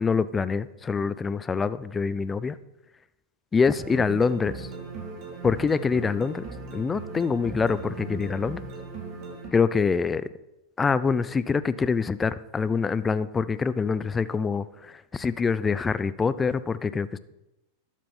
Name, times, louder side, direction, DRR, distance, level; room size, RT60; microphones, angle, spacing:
voice 1, 0.0-2.6 3.5-4.7 5.4-6.4 6.7-8.6 9.5-10.3 10.8-17.2, left 5 dB, 15° left, 15 dB, 0.5 m, -25 dB
sound 1, 3.8-9.5, right 3 dB, 45° right, 3.7 m, -38 dB
12.5 x 7.4 x 5.5 m, 0.94 s
hypercardioid pair, 120°, 0 cm